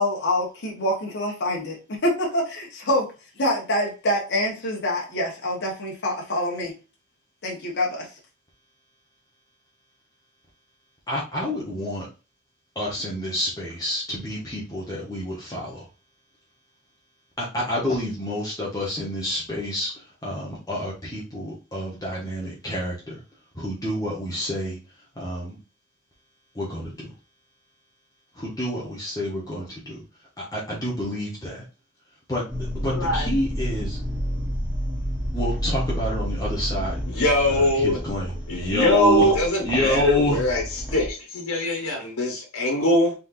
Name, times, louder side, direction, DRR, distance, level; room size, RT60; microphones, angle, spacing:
voice 1, 0.0-1.8 2.0-3.1 3.4-6.7 7.4-8.1, left 1 dB, 55° left, 1.3 m, -25 dB
voice 2, 11.1-12.1 12.7-15.9 17.4-23.2 23.5-24.8 25.2-25.6 26.5-27.1 28.3-30.0 30.4-31.6 32.3-32.4 32.7-34.0 35.3-37.0 37.5-39.3 39.6-40.5, left 1 dB, 15° left, 1.2 m, -28 dB
sound 1, 32.5-41.1, equal, 10° right, 1.3 m, -30 dB
voice 3, 32.9-33.3 37.1-38.0 38.5-40.6 40.9-43.1, left 1 dB, 90° left, 1.3 m, -22 dB
4.3 x 3.9 x 2.6 m
head